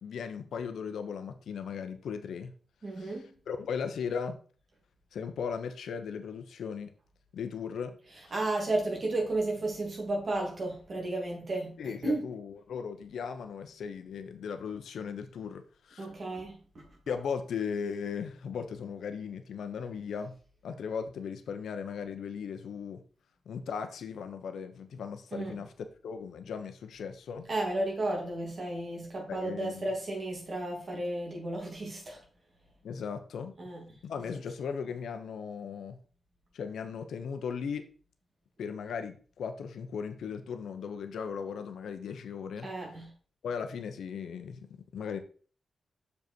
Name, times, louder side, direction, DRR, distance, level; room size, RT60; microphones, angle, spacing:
voice 1, 0.0-2.5 3.0-3.2 3.5-4.4 5.1-6.9 7.3-8.0 11.8-16.1 17.1-20.3 20.6-23.0 23.5-25.7 26.0-27.5 29.3-29.9 32.8-33.5 34.0-36.0 36.5-37.8 38.6-42.7 43.4-45.2, left 6 dB, 85° left, 1.0 m, -37 dB
voice 2, 2.8-3.3 8.3-12.3 16.0-16.8 25.3-25.6 27.5-32.2 33.6-33.8 42.6-43.1, right 2 dB, 35° right, 2.7 m, -33 dB
6.8 x 5.4 x 4.5 m
wide cardioid pair, 175°, 0 cm